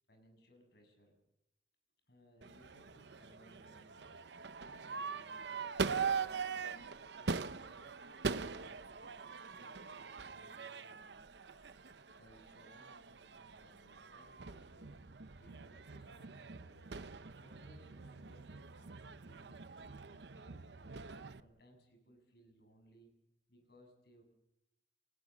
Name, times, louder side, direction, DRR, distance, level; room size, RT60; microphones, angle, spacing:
voice 1, 0.1-1.1 2.1-4.2 4.6-8.0 8.4-11.3 12.2-15.0 15.4-17.1 17.4-21.0 21.4-23.1 23.5-24.2, equal, 60° left, 5 dB, 7.4 m, -65 dB
Crowd / Fireworks, 2.4-21.4, right 5 dB, 70° right, 0.8 m, -43 dB
30.0 x 16.5 x 7.4 m, 0.87 s
head